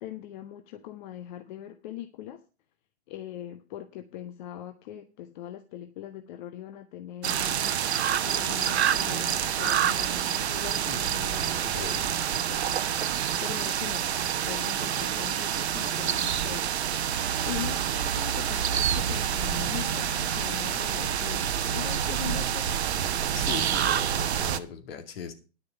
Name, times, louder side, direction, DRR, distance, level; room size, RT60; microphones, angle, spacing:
voice 1, 0.0-2.4 3.1-7.8 8.2-14.1 14.4-16.7 17.1-22.7, left 11 dB, 45° left, 8 dB, 1.1 m, -41 dB
sound 1, 7.2-24.6, right 9 dB, 70° right, 1.0 m, -27 dB
voice 2, 11.6-12.0 20.7-20.8 23.3-25.3, left 7 dB, 60° left, 7 dB, 2.4 m, -39 dB
10.5 x 6.5 x 6.6 m, 0.34 s
hypercardioid pair, 125°, 34 cm